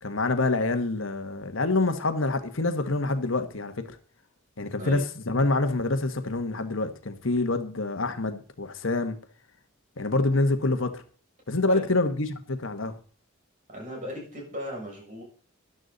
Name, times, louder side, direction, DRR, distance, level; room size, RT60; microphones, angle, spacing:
voice 1, 0.0-3.9 4.6-9.2 10.0-11.0 11.5-12.9, left 2 dB, 65° left, 1.3 m, -26 dB
voice 2, 13.7-15.2, equal, 40° right, 6.6 m, -37 dB
13.5 x 11.5 x 4.0 m
head